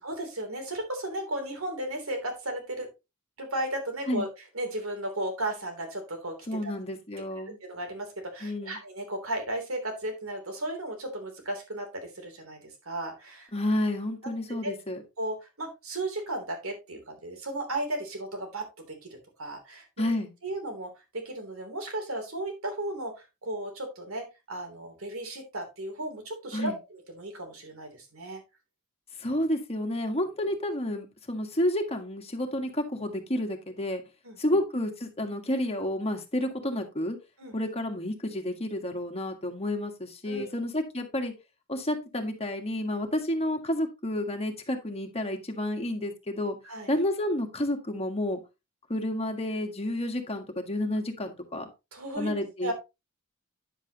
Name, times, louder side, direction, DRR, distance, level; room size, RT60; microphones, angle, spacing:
voice 1, 0.0-2.9 3.4-4.3 4.5-6.4 6.6-6.7 7.6-13.5 14.5-14.7 15.2-28.4 34.2-34.4 37.4-37.6 40.3-40.5 46.6-46.9 51.9-52.3 52.6-52.7, right 1 dB, 75° right, 4 dB, 3.2 m, -35 dB
voice 2, 6.5-7.6 8.4-8.8 13.5-15.0 20.0-20.3 26.5-26.8 29.2-34.0 34.4-37.2 37.5-41.3 41.7-46.6 46.9-48.4 48.9-51.7 52.2-52.7, left 1 dB, 30° left, 5 dB, 1.7 m, -30 dB
10.0 x 7.4 x 2.9 m, 0.25 s
head